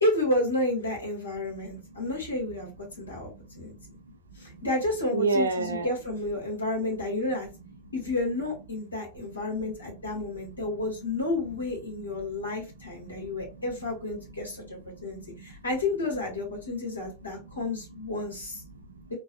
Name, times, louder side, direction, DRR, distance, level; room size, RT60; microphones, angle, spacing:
voice 1, 0.0-2.7 3.0-3.7 4.4-7.5 7.9-18.6, left 2 dB, 75° left, 1.8 m, -31 dB
voice 2, 3.0-4.6 5.1-5.9 9.3-9.4 10.6-10.8 12.3-12.5 12.8-13.6 14.6-15.5 17.4-17.5 18.7-19.1, right 3 dB, 70° right, 0.7 m, -34 dB
3.9 x 2.6 x 2.4 m
figure-of-eight pair, 90°, 0 cm